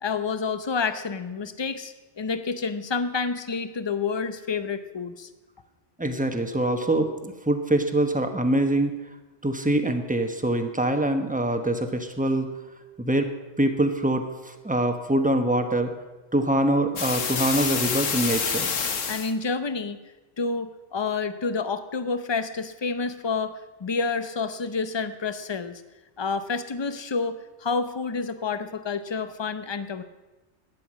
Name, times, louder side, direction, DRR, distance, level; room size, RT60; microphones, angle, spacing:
voice 1, 0.0-5.3 19.1-20.0 20.4-25.8 26.2-30.0, left 4 dB, 25° left, 11 dB, 0.6 m, -29 dB
voice 2, 6.0-8.9 9.4-12.5 13.0-13.3 13.6-15.9 16.3-18.7, right 1 dB, 5° right, 6 dB, 1.0 m, -24 dB
sound 1, 17.0-19.3, left 6 dB, 85° left, 1.5 m, -27 dB
13.0 x 10.0 x 7.5 m, 1.1 s
omnidirectional pair, 1.3 m